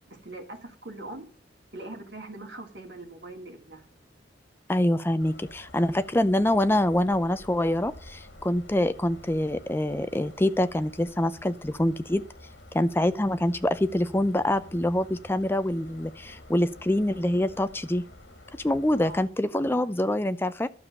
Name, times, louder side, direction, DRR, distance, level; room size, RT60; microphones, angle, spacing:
voice 1, 0.1-1.3 1.7-3.9 18.9-19.2, right 2 dB, 65° right, 3.0 m, -42 dB
voice 2, 4.7-12.2 12.7-18.0 18.6-20.7, left 1 dB, 10° left, 0.5 m, -25 dB
sound 1, 5.2-19.3, left 1 dB, 75° left, 2.6 m, -49 dB
12.5 x 7.0 x 6.8 m
head